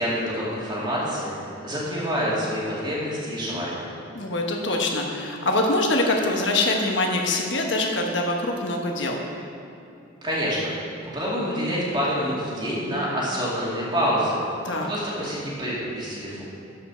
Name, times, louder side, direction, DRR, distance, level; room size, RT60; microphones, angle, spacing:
voice 1, 0.0-1.3 1.6-3.8 10.2-10.7 11.0-14.4 14.8-16.4, equal, 25° right, -7 dB, 2.5 m, -27 dB
voice 2, 4.1-9.2 14.6-14.9, left 2 dB, 65° left, 1 dB, 1.1 m, -24 dB
13.0 x 5.5 x 6.1 m, 2.6 s
head